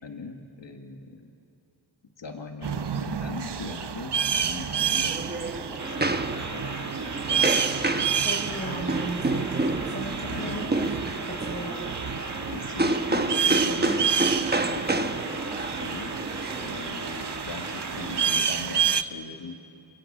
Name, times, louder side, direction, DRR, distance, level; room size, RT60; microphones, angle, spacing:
voice 1, 0.0-1.3 2.2-5.4 5.7-7.0 7.3-8.1 10.3-10.7 12.5-15.2 15.8-16.2 16.6-19.7, left 4 dB, 80° left, 3 dB, 2.0 m, -40 dB
sound 1, 2.6-19.0, right 7 dB, 70° right, 0.9 m, -30 dB
sound 2, 4.8-17.3, right 2 dB, 25° right, 1.1 m, -29 dB
sound 3, 5.8-18.4, right 3 dB, 40° right, 2.1 m, -37 dB
voice 2, 8.1-9.5 9.9-10.9 11.2-11.8, right 1 dB, 25° left, -6 dB, 6.5 m, -36 dB
28.0 x 23.0 x 8.8 m, 2.7 s
wide cardioid pair, 55°, 43 cm